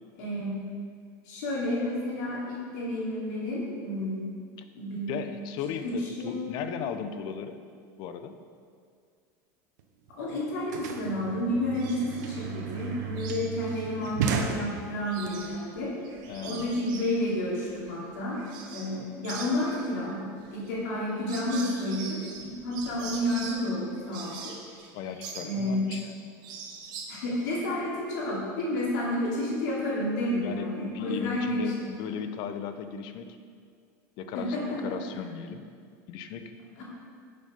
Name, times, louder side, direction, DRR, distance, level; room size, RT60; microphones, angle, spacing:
voice 1, 0.2-0.5 1.2-4.2 4.7-5.2 5.8-6.5 10.2-15.9 16.4-18.4 18.7-20.2 20.5-22.2 22.6-24.5 25.4-25.8 27.1-31.9 34.3-35.0 36.8-36.9, left 1 dB, 75° left, -5 dB, 3.1 m, -30 dB
voice 2, 5.1-7.6 8.0-8.4 16.3-16.7 24.9-26.1 30.4-30.7 30.9-33.4 34.2-34.6 34.8-35.7 36.1-36.6, left 7 dB, 55° left, 9 dB, 0.8 m, -36 dB
sound 1, 9.8-9.9 10.1-15.3, right 6 dB, 80° right, 1.1 m, -34 dB
sound 2, 11.7-12.3 12.7-14.5 14.9-19.0 19.2-26.1 26.4-27.4, right 5 dB, 50° right, 1.7 m, -43 dB
11.0 x 6.8 x 5.3 m, 2.1 s
supercardioid pair, 130°, 9 cm